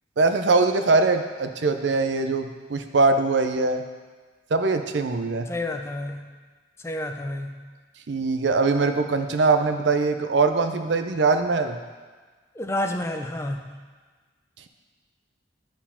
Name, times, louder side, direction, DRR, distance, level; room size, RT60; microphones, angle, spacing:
voice 1, 0.2-3.8 4.5-5.5 8.1-11.8, right 3 dB, 65° right, 8 dB, 0.6 m, -22 dB
voice 2, 5.5-6.2 6.8-7.6 12.6-13.7, left 1 dB, 15° left, 5 dB, 0.4 m, -29 dB
9.5 x 4.4 x 5.6 m, 1.4 s
head